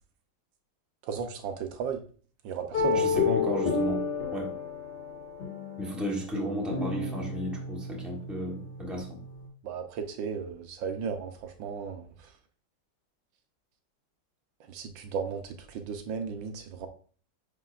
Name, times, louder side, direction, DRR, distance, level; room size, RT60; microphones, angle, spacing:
voice 1, 1.0-2.0 2.4-3.2 9.6-12.1 14.7-16.9, right 6 dB, 90° right, 1.5 m, -35 dB
sound 1, 2.7-9.4, left 4 dB, 70° left, 2.4 m, -31 dB
voice 2, 2.9-4.5 5.8-9.2, equal, ahead, 1.1 m, -34 dB
9.5 x 4.5 x 2.5 m
omnidirectional pair, 2.0 m